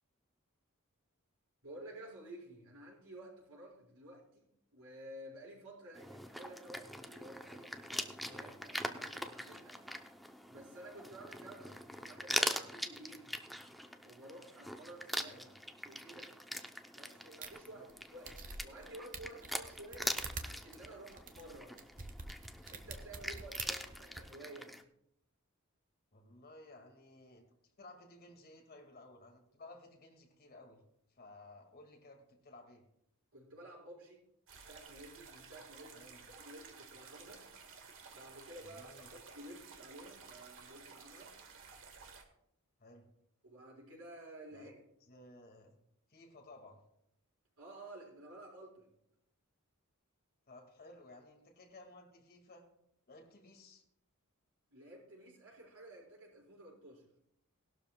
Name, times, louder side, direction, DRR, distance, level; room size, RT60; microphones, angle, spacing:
voice 1, 1.6-4.5 4.7-9.8 10.5-13.4 14.0-15.5 15.8-16.3 16.9-21.8 22.7-24.7 33.3-34.2 34.6-37.5 38.1-41.3 43.4-44.8 47.6-48.9 54.7-57.0, right 1 dB, 90° right, -3 dB, 5.2 m, -53 dB
sound 1, 5.9-24.8, equal, ahead, 0.6 m, -43 dB
sound 2, 17.4-17.5 17.9-18.0 18.3-18.8 19.1-24.2, right 4 dB, 40° right, 1.1 m, -46 dB
voice 2, 26.1-27.5 27.8-30.8 31.1-32.8 35.9-36.2 38.6-39.1 42.8-43.1 44.5-44.8 45.0-45.8 46.1-46.8 50.5-52.7 53.1-53.8, left 2 dB, 45° left, 3 dB, 1.9 m, -56 dB
sound 3, 34.5-42.2, right 5 dB, 65° right, 1.6 m, -54 dB
18.5 x 12.0 x 2.2 m, 0.77 s
head